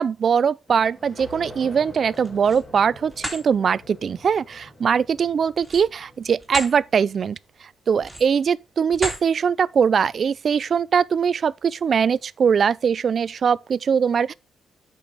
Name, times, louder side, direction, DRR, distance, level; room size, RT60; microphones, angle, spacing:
voice 1, 0.0-14.3, right 7 dB, 45° right, 0.4 m, -21 dB
sound 1, 0.7-7.0, left 1 dB, 25° left, 2.7 m, -45 dB
sound 2, 2.1-2.7 3.1-3.4 5.6-6.8 7.2-7.4 8.0-8.4 8.9-9.3, equal, ahead, 2.8 m, -32 dB
8.6 x 6.1 x 4.0 m
cardioid pair, 130°, 0 cm